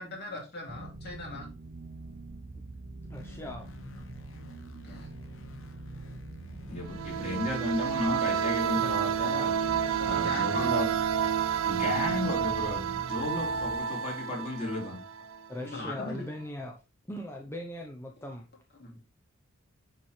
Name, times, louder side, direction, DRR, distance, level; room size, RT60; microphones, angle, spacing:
voice 1, 0.0-1.5 4.8-5.1 10.0-11.0 15.7-16.2 18.8-19.0, left 2 dB, 50° left, -1 dB, 2.6 m, -39 dB
sound 1, 0.7-13.8, right 2 dB, 40° right, 0.6 m, -44 dB
voice 2, 3.0-3.7 15.5-16.8 17.1-18.5, left 1 dB, 10° left, 2 dB, 0.6 m, -40 dB
sound 2, 3.1-10.6, left 3 dB, 65° left, 1.1 m, -51 dB
voice 3, 6.7-9.6 10.0-10.9 11.6-15.0, left 1 dB, 30° left, -5 dB, 4.3 m, -33 dB
sound 3, 6.8-15.4, right 8 dB, 80° right, 0.5 m, -30 dB
10.0 x 4.3 x 3.2 m, 0.30 s
head